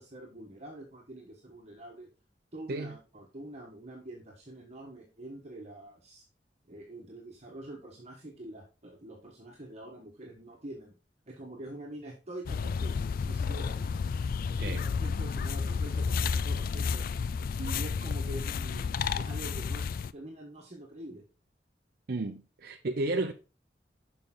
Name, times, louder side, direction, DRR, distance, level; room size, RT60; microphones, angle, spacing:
voice 1, 0.0-2.1 2.5-6.2 6.6-10.9 11.3-14.0 14.5-17.0 17.6-19.9 20.1-21.2, right 1 dB, 40° right, 1.4 m, -45 dB
sound 1, 12.5-20.1, left 5 dB, 50° left, 0.3 m, -31 dB
voice 2, 22.1-23.3, right 2 dB, 55° right, 0.6 m, -32 dB
6.8 x 5.4 x 3.8 m
head